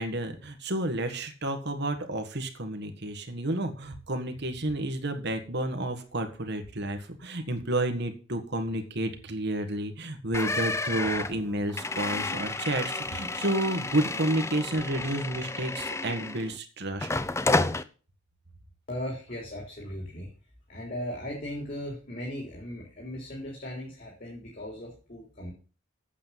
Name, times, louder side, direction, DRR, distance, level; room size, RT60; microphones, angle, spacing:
voice 1, 0.0-17.1, right 1 dB, 55° right, 6 dB, 1.6 m, -31 dB
sound 1, 10.3-16.6 17.0-17.8, left 2 dB, 15° left, 0.6 m, -31 dB
voice 2, 18.9-20.3 20.7-25.5, left 1 dB, 40° left, -2 dB, 3.6 m, -37 dB
8.7 x 7.6 x 7.5 m, 0.37 s
head